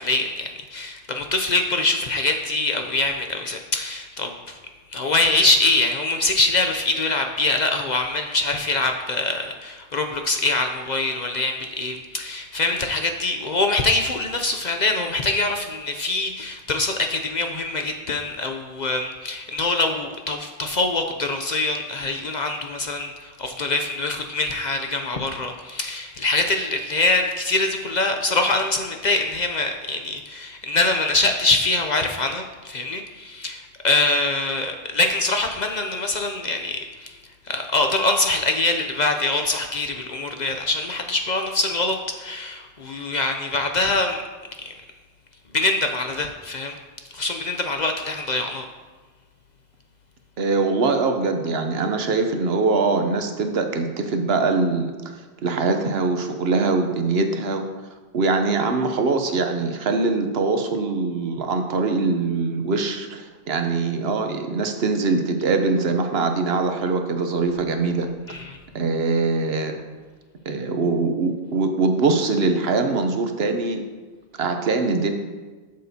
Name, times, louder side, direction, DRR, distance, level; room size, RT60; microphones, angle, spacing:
voice 1, 0.0-4.6 4.9-37.2 37.5-44.2 44.6-44.7 45.5-46.8 47.1-48.6 68.3-68.6, left 2 dB, 50° left, 5 dB, 0.6 m, -24 dB
voice 2, 50.4-54.9 55.4-57.7 58.1-68.1 68.7-69.8 70.5-73.8 74.4-75.1, right 3 dB, 65° right, 6 dB, 1.0 m, -22 dB
12.0 x 6.6 x 2.8 m, 1.4 s
omnidirectional pair, 1.1 m